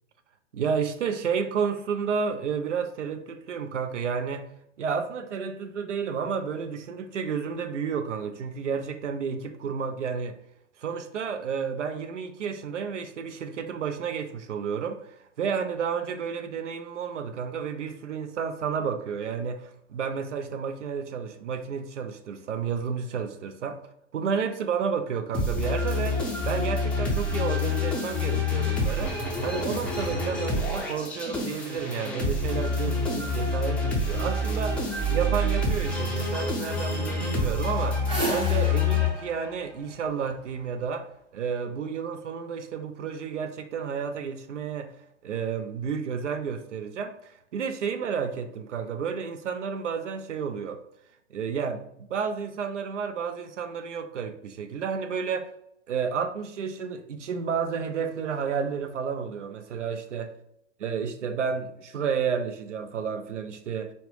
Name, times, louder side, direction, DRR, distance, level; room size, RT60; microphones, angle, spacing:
voice 1, 0.5-4.5 4.8-10.4 10.8-23.8 24.1-44.9 45.2-50.8 51.3-55.5 55.9-60.3 60.8-63.9, right 6 dB, 75° right, 0.6 m, -31 dB
sound 1, 25.3-39.6, left 2 dB, 5° left, 0.5 m, -27 dB
sound 2, 38.1-40.7, right 2 dB, 15° right, 1.0 m, -34 dB
4.2 x 2.1 x 3.2 m
figure-of-eight pair, 105°, 36 cm